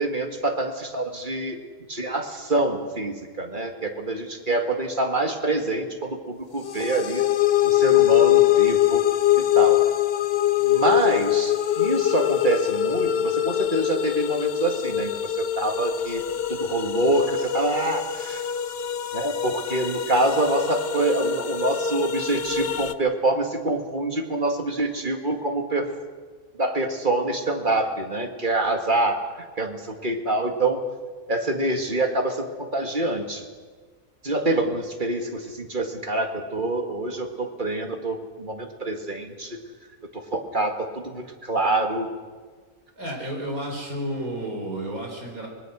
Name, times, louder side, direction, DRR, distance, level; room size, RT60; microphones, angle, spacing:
voice 1, 0.0-1.6 1.9-7.2 7.6-9.0 9.4-9.8 10.6-16.2 16.5-18.4 19.1-25.9 26.6-29.2 29.6-30.8 31.3-33.4 34.2-39.6 40.1-42.1, right 2 dB, 35° right, 4 dB, 2.2 m, -26 dB
sound 1, 6.6-22.9, left 12 dB, 50° left, 1.0 m, -23 dB
voice 2, 43.0-45.5, right 1 dB, 90° right, 1 dB, 5.3 m, -31 dB
24.5 x 20.5 x 6.3 m, 1.5 s
omnidirectional pair, 1.5 m